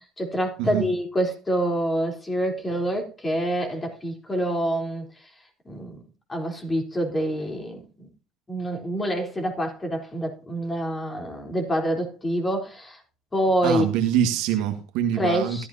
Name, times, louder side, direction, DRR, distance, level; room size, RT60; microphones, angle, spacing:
voice 1, 0.2-5.1 5.7-6.0 6.3-8.1 8.5-13.0 13.3-13.9 15.1-15.7, right 1 dB, 20° left, 3.7 m, -26 dB
voice 2, 13.6-15.7, right 9 dB, 75° right, 1.7 m, -24 dB
13.5 x 12.0 x 2.8 m
supercardioid pair, 80°, 0 cm